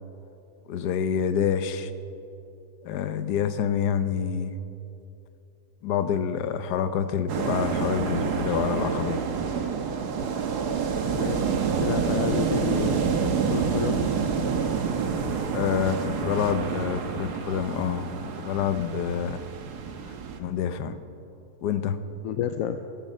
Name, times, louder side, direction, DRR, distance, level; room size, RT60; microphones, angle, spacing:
voice 1, 0.7-1.9 2.8-4.6 5.8-9.2 15.5-19.4 20.4-21.0 21.6-22.0, left 8 dB, 85° left, 11 dB, 1.3 m, -27 dB
sound 1, 7.3-20.4, right 6 dB, 85° right, 1.6 m, -28 dB
voice 2, 11.0-13.1 13.5-14.1 22.2-22.8, left 9 dB, 65° left, 8 dB, 0.9 m, -30 dB
17.5 x 13.5 x 5.4 m, 2.8 s
omnidirectional pair, 1.7 m